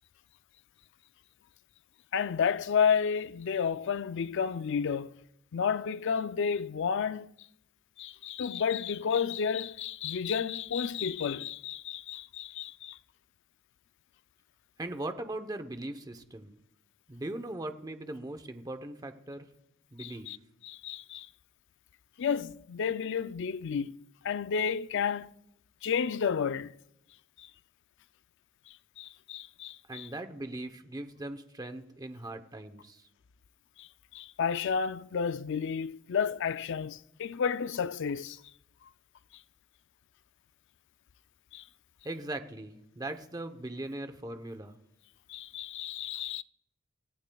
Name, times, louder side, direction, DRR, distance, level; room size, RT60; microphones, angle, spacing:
voice 1, 2.1-5.1 5.5-7.3 8.0-13.0 20.0-20.4 20.6-21.3 22.2-24.0 24.2-25.3 25.8-26.7 27.4-27.5 29.0-30.1 33.8-38.4 41.5-41.6 45.3-46.4, left 6 dB, 60° left, 0.4 m, -31 dB
voice 2, 14.8-16.6 17.1-19.5 19.9-20.3 29.9-33.1 42.0-44.8, right 1 dB, 20° right, 0.8 m, -39 dB
28.5 x 15.5 x 2.3 m
head